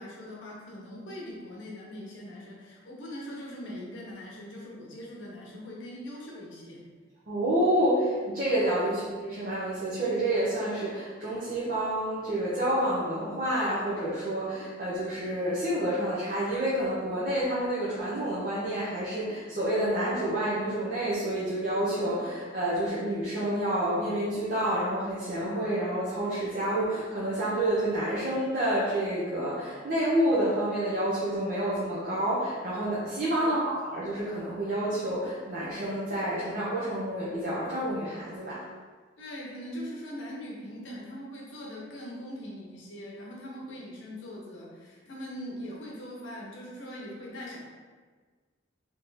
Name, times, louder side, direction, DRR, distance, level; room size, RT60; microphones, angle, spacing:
voice 1, 0.0-6.8 8.8-9.0 33.4-33.5 39.2-47.6, equal, 85° left, -4 dB, 1.1 m, -41 dB
voice 2, 7.3-38.6, right 1 dB, 50° right, -9 dB, 1.0 m, -29 dB
3.7 x 3.1 x 4.0 m, 1.5 s
head